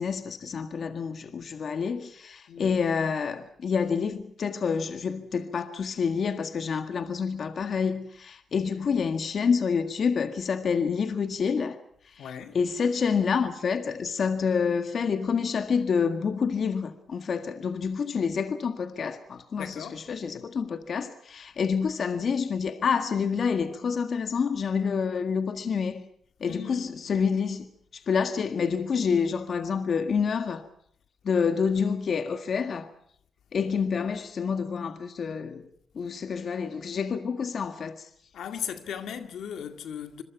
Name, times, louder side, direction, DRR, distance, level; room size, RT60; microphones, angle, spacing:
voice 1, 0.0-11.8 12.1-12.3 12.5-26.0 26.4-27.7 27.9-30.7 31.2-32.9 33.5-35.7 35.9-38.1, left 6 dB, 60° left, 1.8 m, -28 dB
voice 2, 2.5-2.8 8.7-8.9 12.2-12.6 19.6-20.0 26.4-27.0 38.3-40.2, left 8 dB, 85° left, 2.1 m, -37 dB
26.5 x 22.5 x 5.9 m
cardioid pair, 80°, 0 cm